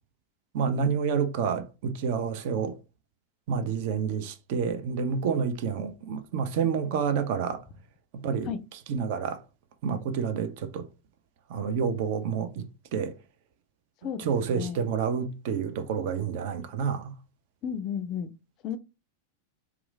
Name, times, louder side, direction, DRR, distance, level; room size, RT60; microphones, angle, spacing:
voice 1, 0.5-2.8 3.5-7.6 8.1-8.5 8.9-9.4 9.8-10.9 11.5-13.2 14.2-17.1, right 6 dB, 50° right, 0.4 m, -29 dB
voice 2, 17.6-18.3 18.6-18.8, left 8 dB, 35° left, 0.3 m, -32 dB
2.9 x 2.3 x 2.3 m
figure-of-eight pair, 90°, 0 cm